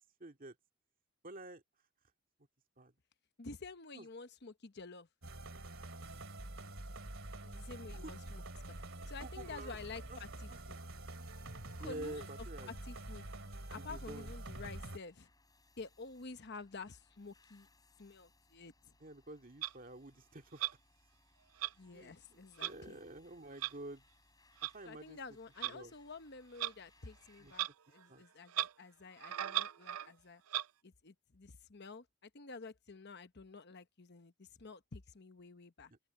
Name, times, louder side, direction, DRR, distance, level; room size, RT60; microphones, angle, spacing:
voice 1, 0.2-0.6 1.2-1.6 2.8-2.9 3.9-4.1 6.0-6.2 7.9-8.1 9.2-9.8 10.1-10.6 11.8-12.7 13.8-14.3 19.0-20.6 21.9-24.0 24.6-25.2 25.6-25.9 27.4-27.5 28.1-28.2 35.9-36.0, right 1 dB, 40° right, 2.1 m, -49 dB
voice 2, 3.4-5.1 7.4-8.4 9.1-10.8 11.8-12.3 12.7-15.3 15.8-17.7 18.0-18.9 21.8-23.0 24.8-30.4 30.8-35.9, left 4 dB, 50° left, 1.0 m, -50 dB
sound 1, 5.2-15.0, right 1 dB, 65° right, 2.7 m, -47 dB
sound 2, 12.8-27.7, left 2 dB, 15° left, 7.8 m, -70 dB
Clock, 19.6-19.7 20.6-20.7 21.6-21.7 22.6-22.7 23.6-23.7 24.6-24.7 25.6-25.7 26.6-26.7 27.5-27.7 28.0-28.1 28.5-28.7 29.2-30.1 30.5-30.7, right 13 dB, 80° right, 0.5 m, -37 dB
head